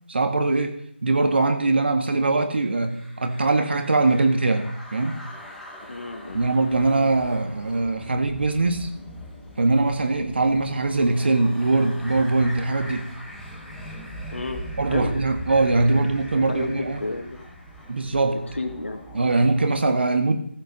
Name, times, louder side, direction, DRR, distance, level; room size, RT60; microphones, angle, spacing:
voice 1, 0.1-5.1 6.3-8.9 9.6-13.1 14.8-17.0 17.9-18.4 19.1-20.4, right 3 dB, 60° right, 7 dB, 1.7 m, -22 dB
sound 1, 2.8-19.8, equal, ahead, 1.2 m, -41 dB
voice 2, 5.9-6.4 14.3-14.6 14.9-15.1 15.9-16.0 16.3-17.4 18.3-19.0, left 2 dB, 90° left, 6 dB, 1.8 m, -31 dB
14.5 x 5.4 x 6.7 m, 0.65 s
figure-of-eight pair, 165°, 6 cm